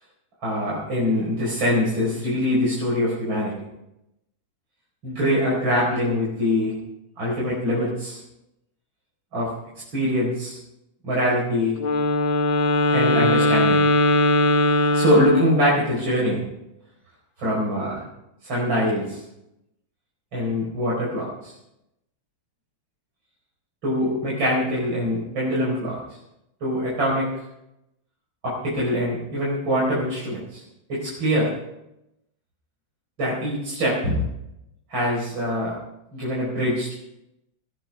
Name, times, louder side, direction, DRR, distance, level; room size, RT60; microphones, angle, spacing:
voice 1, 0.4-3.5 5.0-6.7 7.2-8.2 9.3-9.5 9.9-10.6 11.0-11.8 12.9-13.8 14.9-16.4 17.4-18.0 18.4-19.2 20.3-21.5 23.8-26.0 26.6-27.3 28.4-30.6 30.9-31.5 33.2-34.2 34.9-35.7 36.1-36.9, equal, 80° right, -6 dB, 5.5 m, -23 dB
Wind instrument woodwind instrument, 11.8-15.9, left 1 dB, 85° left, 2.3 m, -20 dB
20.0 x 16.5 x 3.5 m, 0.85 s
omnidirectional pair, 2.1 m